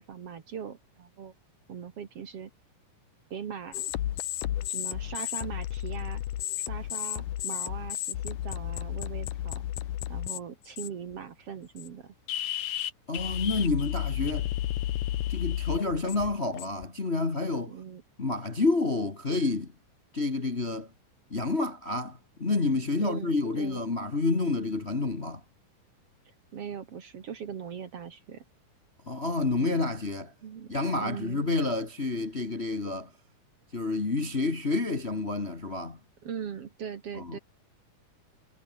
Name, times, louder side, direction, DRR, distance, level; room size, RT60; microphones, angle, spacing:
voice 1, 0.0-1.3 1.7-2.5 3.3-3.8 4.7-6.2 6.6-9.6 10.1-12.1 17.7-18.0 23.0-23.8 26.5-28.4 29.6-29.9 30.4-31.5 36.2-37.4, right 7 dB, 50° right, 2.4 m, -40 dB
sound 1, 3.7-10.4 10.8-11.1 11.8-11.9 12.3-16.9, left 12 dB, 75° left, 2.9 m, -33 dB
voice 2, 13.1-14.5 15.3-17.7 18.2-19.7 20.1-20.9 21.3-25.4 29.1-30.3 30.7-33.1 33.7-36.0 37.2-37.4, left 3 dB, 25° left, 1.5 m, -29 dB
omnidirectional pair, 3.8 m